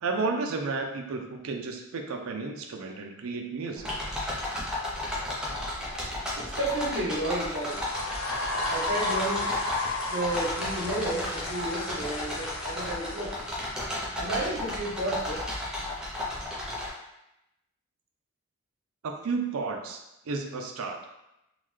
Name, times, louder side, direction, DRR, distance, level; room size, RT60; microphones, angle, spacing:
voice 1, 0.0-3.9 19.0-20.0 20.3-21.0, right 4 dB, 75° right, 3 dB, 0.4 m, -32 dB
sound 1, 3.8-16.9, left 1 dB, 5° right, 0.5 m, -34 dB
voice 2, 6.4-7.8 8.7-9.5 10.1-13.3 14.1-15.4, right 1 dB, 55° right, -4 dB, 0.9 m, -32 dB
sound 2, 7.6-13.9, left 2 dB, 65° left, 0.5 m, -34 dB
3.7 x 2.2 x 3.1 m, 0.88 s
head